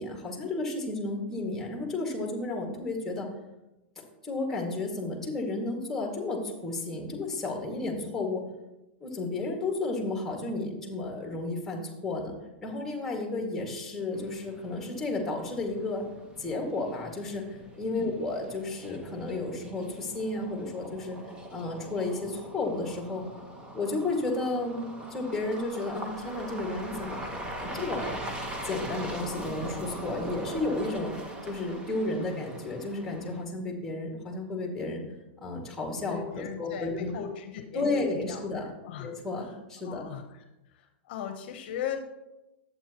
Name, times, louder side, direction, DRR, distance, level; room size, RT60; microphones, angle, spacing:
voice 1, 0.0-3.3 4.2-8.4 9.0-12.3 12.6-16.0 16.4-21.2 21.5-23.2 23.7-28.2 28.6-31.2 31.4-35.0 35.4-37.1 37.7-38.7 39.0-40.0, left 2 dB, 5° left, 0 dB, 2.1 m, -32 dB
sound 1, 14.1-33.4, right 1 dB, 15° right, 1.1 m, -41 dB
voice 2, 36.1-38.4 38.8-39.1 39.4-39.5 39.8-40.4 40.7-42.0, left 9 dB, 55° left, 7 dB, 0.9 m, -38 dB
11.0 x 8.1 x 3.0 m, 0.98 s
hypercardioid pair, 140°, 6 cm